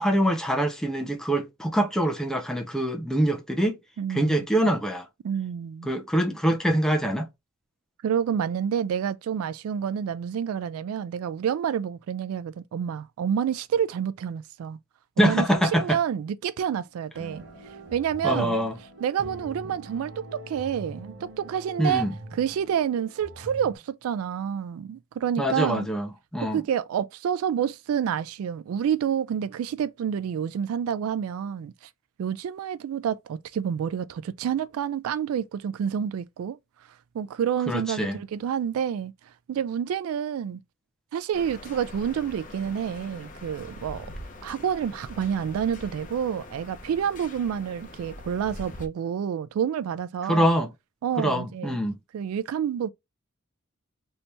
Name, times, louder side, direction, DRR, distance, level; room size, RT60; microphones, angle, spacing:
voice 1, 0.0-3.8 4.1-5.1 5.9-7.3 15.2-16.0 18.2-18.8 21.8-22.1 25.4-26.6 37.7-38.2 50.3-50.7 51.2-52.0, equal, 5° left, 0.4 m, -24 dB
voice 2, 4.0-4.5 5.2-5.9 8.0-14.8 15.2-17.4 17.9-18.5 19.0-25.9 26.4-31.9 32.2-36.6 37.1-39.1 39.5-40.6 41.1-44.1 44.4-50.5 51.0-51.8 52.1-52.9, right 8 dB, 90° right, 0.3 m, -28 dB
sound 1, 17.1-23.8, right 1 dB, 60° right, 1.0 m, -43 dB
sound 2, 41.3-48.9, left 2 dB, 40° left, 0.7 m, -43 dB
3.3 x 2.7 x 2.9 m
head